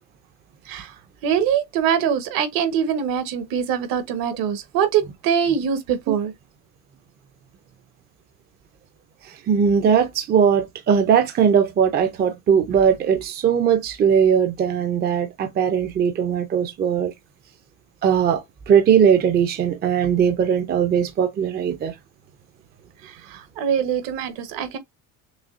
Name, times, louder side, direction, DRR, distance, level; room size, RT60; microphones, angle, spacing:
voice 1, 1.2-6.3 23.3-24.8, right 8 dB, 65° right, 1.1 m, -23 dB
voice 2, 9.5-17.1 18.0-21.9, right 7 dB, 25° right, 0.5 m, -19 dB
6.2 x 2.2 x 2.5 m
cardioid pair, 155°, 37 cm